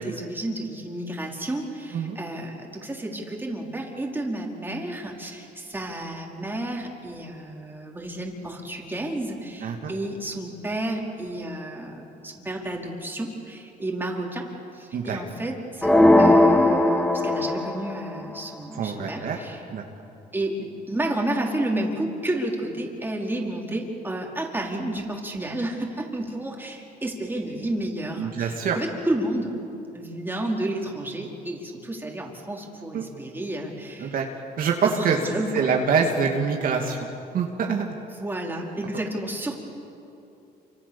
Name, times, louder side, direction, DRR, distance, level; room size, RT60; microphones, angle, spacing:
voice 1, 0.0-14.5 14.7-15.9 16.2-19.6 20.3-29.5 29.9-34.1 34.8-35.7 38.2-39.6, right 1 dB, 10° right, 0 dB, 4.4 m, -31 dB
voice 2, 9.6-9.9 14.9-15.2 18.8-19.4 19.7-19.8 28.2-28.8 32.9-33.0 34.0-34.3 34.6-35.2 35.5-37.0 37.3-37.9, right 6 dB, 55° right, 1 dB, 2.6 m, -25 dB
sound 1, 15.8-17.9, left 1 dB, 5° left, 2.0 m, -18 dB
28.5 x 26.0 x 7.2 m, 2.8 s
cardioid pair, 110°, 17 cm